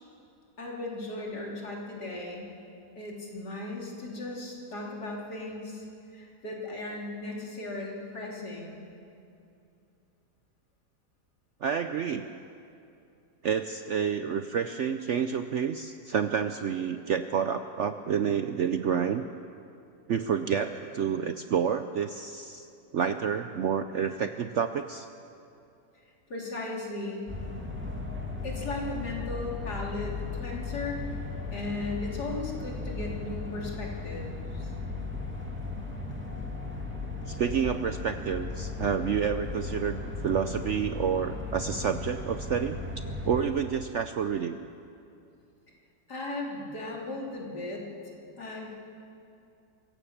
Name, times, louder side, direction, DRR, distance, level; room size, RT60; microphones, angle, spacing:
voice 1, 0.6-2.5 3.0-5.8 6.1-8.8 26.3-27.3 28.4-31.0 31.5-34.7 46.1-48.8, left 2 dB, 70° left, -2 dB, 3.7 m, -37 dB
voice 2, 11.6-12.3 13.4-19.3 20.1-22.7 22.9-25.1 37.3-42.8 43.2-44.6, right 7 dB, 65° right, 9 dB, 0.7 m, -29 dB
sound 1, 27.3-43.5, left 3 dB, 5° right, 2.4 m, -36 dB
24.0 x 16.5 x 7.3 m, 2.6 s
omnidirectional pair, 1.8 m